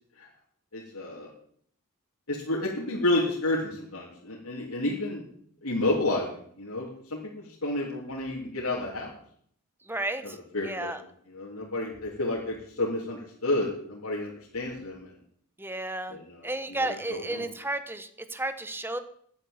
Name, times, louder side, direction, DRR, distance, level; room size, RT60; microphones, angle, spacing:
voice 1, 0.7-1.3 2.3-5.2 5.6-9.1 10.2-10.9 11.3-15.1 16.1-17.5, left 2 dB, 90° left, -4 dB, 3.0 m, -31 dB
voice 2, 9.9-10.4 10.6-11.0 15.6-16.2 16.4-19.0, right 2 dB, 10° right, 10 dB, 1.1 m, -32 dB
10.5 x 10.0 x 8.7 m, 0.63 s
head